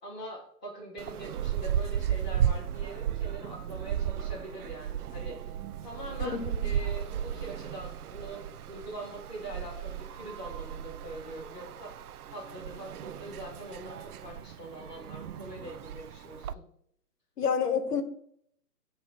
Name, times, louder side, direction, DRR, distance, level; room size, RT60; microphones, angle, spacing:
voice 1, 0.0-5.4 5.8-11.9 12.3-16.6, right 1 dB, 5° left, 0.5 m, -43 dB
sound 1, 1.0-16.5, right 9 dB, 70° right, 0.5 m, -35 dB
voice 2, 6.2-6.7 17.4-18.0, left 6 dB, 75° left, 1.1 m, -29 dB
8.8 x 3.2 x 4.0 m
hypercardioid pair, 150°, 47 cm